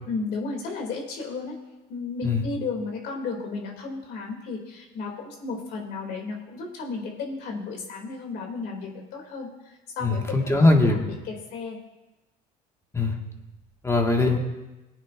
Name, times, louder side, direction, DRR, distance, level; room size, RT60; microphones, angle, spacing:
voice 1, 0.1-1.6 1.9-9.5 10.0-11.8, left 4 dB, 70° left, 1 dB, 2.8 m, -33 dB
voice 2, 10.0-11.0 12.9-13.2 13.8-14.4, left 2 dB, 15° left, 2 dB, 1.8 m, -21 dB
19.5 x 8.9 x 2.6 m, 1.1 s
supercardioid pair, 85°, 18 cm